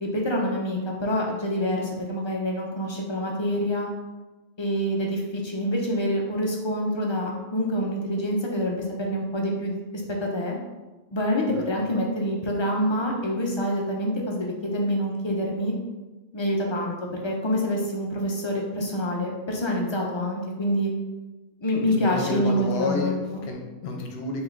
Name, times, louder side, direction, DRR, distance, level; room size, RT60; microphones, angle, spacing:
voice 1, 0.0-3.9 4.6-10.6 11.1-15.7 16.3-20.9 21.6-23.5, equal, 40° left, -1 dB, 0.4 m, -26 dB
voice 2, 21.8-23.1 23.4-24.4, left 2 dB, 70° left, 1 dB, 0.9 m, -30 dB
3.1 x 2.9 x 3.7 m, 1.2 s
omnidirectional pair, 1.1 m